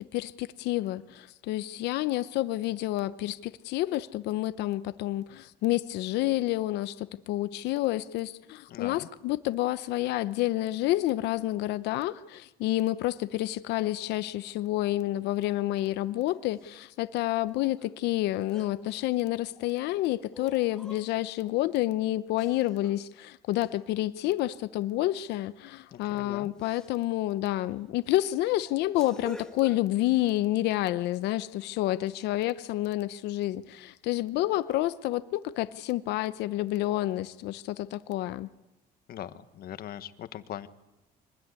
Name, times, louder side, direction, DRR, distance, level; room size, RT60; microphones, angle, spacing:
voice 1, 0.0-38.5, left 15 dB, 85° left, 0.8 m, -29 dB
voice 2, 8.7-9.1 25.9-26.5 39.1-40.7, left 11 dB, 65° left, 1.4 m, -40 dB
sound 1, 16.3-16.9 17.8-17.9 18.3-19.8 20.3-21.5 22.4-23.1 23.6-24.0 25.3-25.6 25.9-26.1 26.6-26.9 27.6-27.7 28.1-30.3, left 2 dB, 5° left, 1.6 m, -49 dB
25.0 x 20.0 x 9.7 m
cardioid pair, 110°, 17 cm